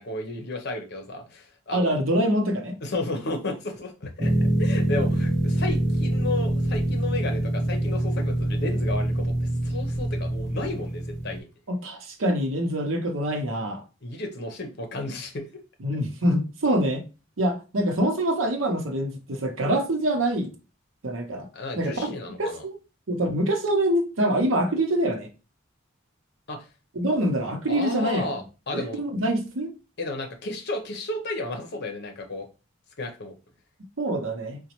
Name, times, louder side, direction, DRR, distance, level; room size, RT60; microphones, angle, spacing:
voice 1, 0.0-1.9 2.8-4.3 4.6-11.5 14.0-15.5 21.5-22.6 26.5-26.6 27.7-29.0 30.0-32.5 33.0-33.3, left 2 dB, 55° left, 0.8 m, -33 dB
voice 2, 1.7-2.8 11.7-13.8 15.8-17.0 17.4-20.5 21.0-21.5 21.8-22.1 22.4-22.8 23.1-25.3 26.9-28.2 28.7-29.7 34.0-34.6, right 1 dB, 80° right, 0.8 m, -25 dB
sound 1, 4.2-11.4, right 1 dB, 20° right, 1.2 m, -25 dB
4.0 x 2.2 x 3.0 m
head